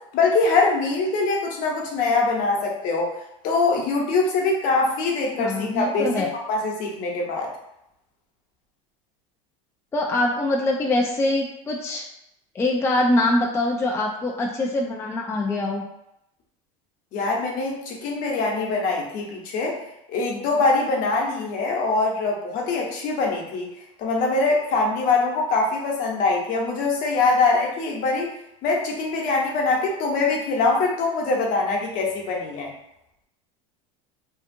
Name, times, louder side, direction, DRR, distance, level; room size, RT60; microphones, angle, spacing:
voice 1, 0.1-3.1 3.4-7.5 17.1-19.8 20.1-23.7 24.0-28.3 28.6-32.7, left 3 dB, 55° left, -1 dB, 0.9 m, -23 dB
voice 2, 5.4-6.3 9.9-12.0 12.6-15.8, left 2 dB, 15° left, 0 dB, 0.3 m, -23 dB
2.7 x 2.4 x 2.5 m, 0.81 s
supercardioid pair, 105°, 17 cm